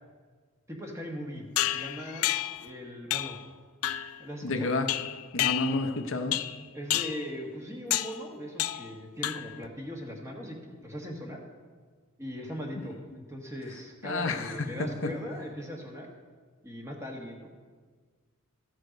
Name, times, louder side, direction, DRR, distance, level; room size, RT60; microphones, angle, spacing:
voice 1, 0.7-2.3 2.6-3.4 4.2-4.7 6.7-11.4 12.2-16.1 16.6-17.5, equal, 15° right, 0 dB, 1.4 m, -39 dB
sound 1, 1.6-2.7 3.1-3.4 3.8-4.2 4.9-6.0 6.3-6.6 6.9-7.3 7.9-8.2 8.6-8.9 9.2-9.7, left 14 dB, 85° left, 0.4 m, -30 dB
voice 2, 4.4-4.9 5.3-6.4 12.8-12.9 14.0-15.1, left 3 dB, 65° left, 6 dB, 0.8 m, -30 dB
14.0 x 6.5 x 5.1 m, 1.5 s
head